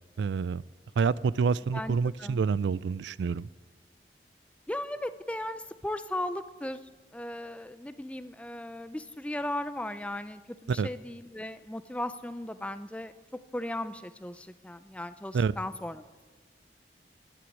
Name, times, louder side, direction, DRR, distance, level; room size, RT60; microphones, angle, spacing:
voice 1, 0.2-0.6 1.0-3.5 10.7-10.9 15.3-15.5, right 5 dB, 80° right, 19 dB, 0.4 m, -27 dB
voice 2, 1.7-2.4 4.7-6.8 7.1-16.2, left 1 dB, 5° left, 12 dB, 0.4 m, -37 dB
11.0 x 10.0 x 9.1 m, 1.3 s
head